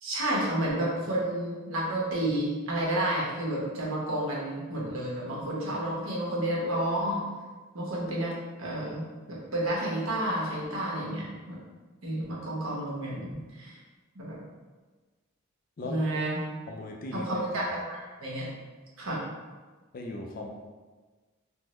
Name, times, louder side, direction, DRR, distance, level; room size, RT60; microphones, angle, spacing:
voice 1, 0.0-7.2 7.7-8.3 8.6-9.0 9.5-11.6 12.0-13.8 14.1-14.4 15.8-16.4 17.1-18.5 19.0-19.2, right 1 dB, 75° right, -5 dB, 1.0 m, -30 dB
voice 2, 16.7-17.5 19.9-20.5, left 2 dB, 45° left, 1 dB, 0.4 m, -38 dB
3.6 x 2.1 x 3.0 m, 1.3 s
head